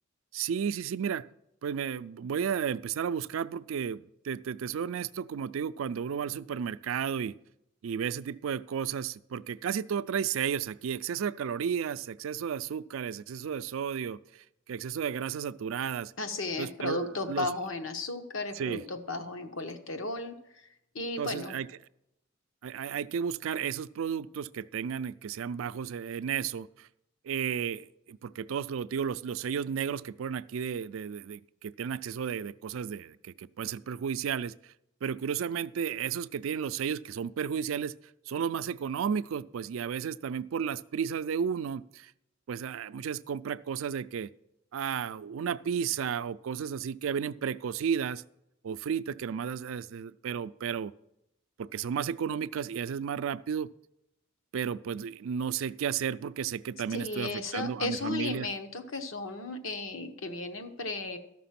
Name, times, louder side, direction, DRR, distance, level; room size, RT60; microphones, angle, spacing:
voice 1, 0.3-1.2 1.6-7.4 7.8-16.1 16.6-17.5 18.6-18.8 21.2-21.7 22.6-26.9 27.2-34.7 35.0-37.9 38.3-42.1 42.5-44.3 44.7-48.2 48.6-50.9 51.6-53.7 54.5-58.5, right 7 dB, 85° right, 16 dB, 0.4 m, -33 dB
voice 2, 16.2-20.7 20.9-21.6 56.9-61.2, left 3 dB, 80° left, 6 dB, 1.1 m, -35 dB
13.5 x 6.0 x 5.8 m, 0.82 s
head